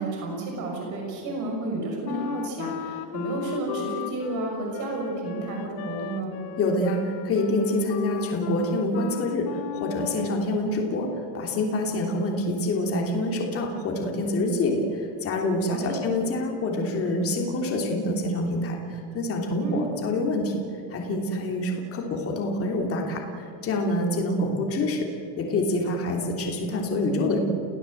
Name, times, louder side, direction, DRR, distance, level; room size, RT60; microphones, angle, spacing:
voice 1, 0.0-6.4 15.8-16.0 19.6-19.8, right 2 dB, 40° right, 0 dB, 6.3 m, -31 dB
Wind instrument woodwind instrument, 2.0-10.5, left 9 dB, 45° left, 0.9 m, -36 dB
voice 2, 6.6-11.1 11.3-20.6 20.9-25.1 25.4-27.4, left 1 dB, 30° left, 1 dB, 3.1 m, -26 dB
30.0 x 16.5 x 7.9 m, 2.6 s
cardioid pair, 175°, 46 cm